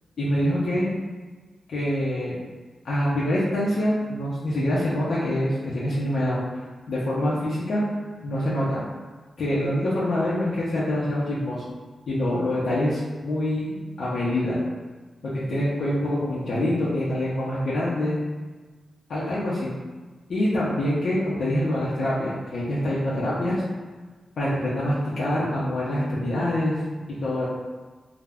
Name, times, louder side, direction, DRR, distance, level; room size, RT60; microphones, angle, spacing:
voice 1, 0.2-0.9 1.7-2.4 2.8-7.8 8.2-8.8 9.4-11.6 12.1-14.6 15.2-18.2 19.1-19.7 20.3-23.6 24.4-26.8 27.2-27.5, left 1 dB, 70° left, -8 dB, 0.5 m, -25 dB
2.3 x 2.0 x 3.4 m, 1.3 s
wide cardioid pair, 135°, 0 cm